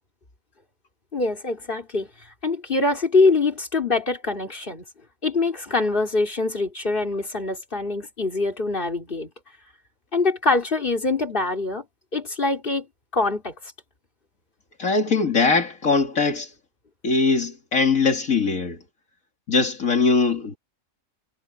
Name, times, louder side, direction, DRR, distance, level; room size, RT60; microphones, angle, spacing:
voice 1, 1.1-2.1 2.4-4.8 5.2-9.3 10.1-11.8 12.1-12.9 13.1-13.5, left 3 dB, 40° left, 3.7 m, -24 dB
voice 2, 14.8-16.5 17.0-18.8 19.5-20.6, left 4 dB, 70° left, 2.6 m, -21 dB
omnidirectional pair, 1.5 m